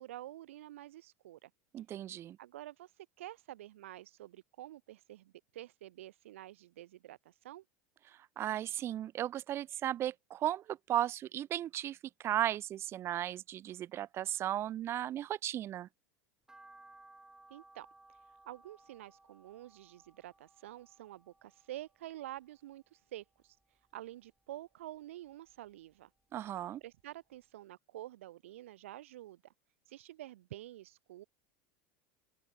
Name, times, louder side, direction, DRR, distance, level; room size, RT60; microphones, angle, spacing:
voice 1, 0.0-1.5 2.4-2.9 3.2-7.6 17.5-17.9 18.5-23.6 23.9-26.1 26.8-29.5 29.9-31.2, right 14 dB, 85° right, 3.9 m, -49 dB
voice 2, 1.7-2.4 8.4-15.9 26.3-26.8, right 12 dB, 40° right, 0.4 m, -35 dB
sound 1, 16.5-22.8 23.2-24.3 24.7-26.1 26.4-26.5 27.0-27.1 27.4-27.5, right 2 dB, 10° right, 6.3 m, -61 dB
open air
hypercardioid pair, 100°, 7 cm